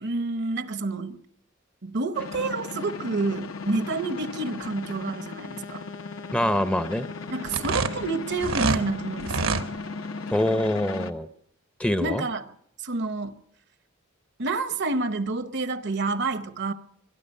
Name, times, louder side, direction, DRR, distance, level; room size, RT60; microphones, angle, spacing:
voice 1, 0.0-1.2 1.8-5.8 7.3-9.6 12.0-12.5 12.8-13.4 14.4-16.7, right 3 dB, 60° right, 0.8 m, -29 dB
sound 1, 2.1-11.1, left 4 dB, 80° left, 1.0 m, -36 dB
voice 2, 6.3-7.1 10.3-11.3 11.8-12.2, left 1 dB, 5° left, 0.6 m, -24 dB
sound 2, 7.4-8.8 9.2-9.6, right 4 dB, 80° right, 1.2 m, -26 dB
22.5 x 12.0 x 5.4 m
head